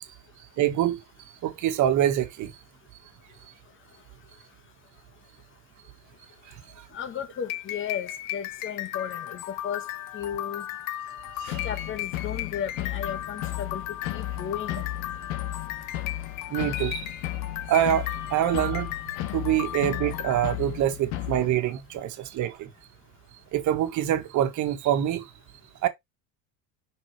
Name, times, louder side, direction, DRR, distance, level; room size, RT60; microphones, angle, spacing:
voice 1, 0.6-1.0 1.4-2.5 11.4-11.7 16.5-17.0 17.7-18.9 19.3-22.7 23.5-25.2 25.8-25.9, right 11 dB, 50° right, 1.7 m, -25 dB
voice 2, 6.9-9.8 10.1-10.6 11.6-13.8 14.1-14.8 20.8-20.9, left 9 dB, 30° left, 1.7 m, -34 dB
sound 1, 7.3-20.6, left 13 dB, 55° left, 1.0 m, -36 dB
sound 2, 11.4-21.5, left 13 dB, 75° left, 1.7 m, -34 dB
6.4 x 6.0 x 3.3 m
supercardioid pair, 125°, 38 cm